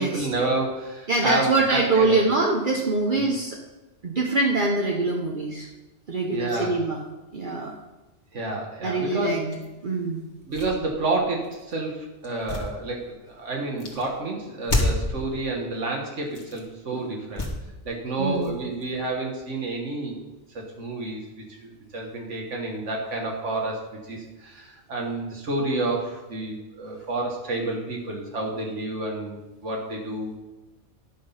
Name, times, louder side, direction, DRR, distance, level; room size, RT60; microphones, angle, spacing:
voice 1, 0.0-2.2 3.2-3.3 6.3-6.8 8.3-9.4 10.5-17.5 17.9-20.2 20.5-21.2 21.5-30.3, right 2 dB, 75° right, 0 dB, 1.7 m, -29 dB
voice 2, 1.1-3.6 4.0-5.7 6.1-7.0 7.3-7.7 8.8-10.2 16.9-17.1 18.2-18.5, right 3 dB, 45° right, 0 dB, 1.0 m, -24 dB
sound 1, 9.5-9.7 10.3-11.7 12.2-13.3 13.8-14.1 14.6-15.2 16.2-16.7 17.3-17.9 18.2-19.5, left 2 dB, 40° left, 2.0 m, -30 dB
11.0 x 6.0 x 5.6 m, 1.1 s
omnidirectional pair, 1.3 m